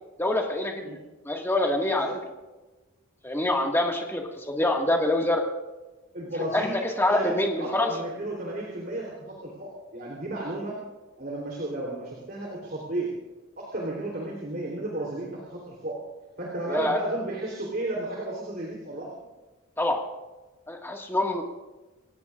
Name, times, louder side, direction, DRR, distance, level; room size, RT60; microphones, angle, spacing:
voice 1, 0.2-1.0 1.3-2.1 3.2-5.4 6.5-7.9 16.7-17.0 19.8-20.0 20.7-21.4, left 1 dB, 10° left, 1 dB, 1.9 m, -25 dB
voice 2, 6.1-10.8 11.2-13.1 13.6-16.0 16.4-19.1, right 1 dB, 45° right, -3 dB, 3.5 m, -33 dB
29.0 x 16.5 x 2.5 m, 1.1 s
head